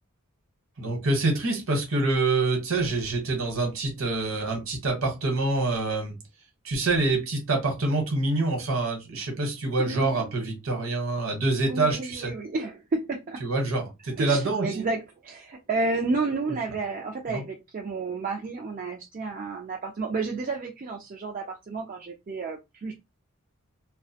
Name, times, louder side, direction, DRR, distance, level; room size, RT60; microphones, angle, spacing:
voice 1, 0.8-6.1 6.6-12.3 13.4-14.8 17.3-17.4, right 2 dB, 65° right, 1.0 m, -26 dB
voice 2, 9.8-10.3 11.7-13.4 14.2-22.9, right 3 dB, 40° right, 0.3 m, -31 dB
2.4 x 2.0 x 2.7 m
head